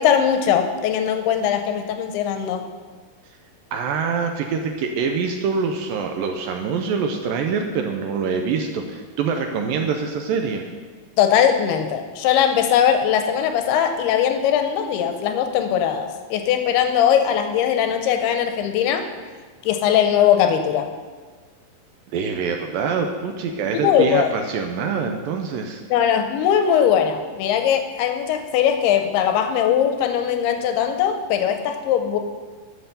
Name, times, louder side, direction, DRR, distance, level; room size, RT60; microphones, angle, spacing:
voice 1, 0.0-2.6 11.2-19.1 19.6-20.9 23.8-24.3 25.9-32.2, left 9 dB, 90° left, 6 dB, 2.7 m, -20 dB
voice 2, 3.7-10.6 22.1-25.8, right 5 dB, 80° right, 4 dB, 2.1 m, -25 dB
12.0 x 5.7 x 6.8 m, 1.5 s
omnidirectional pair, 4.6 m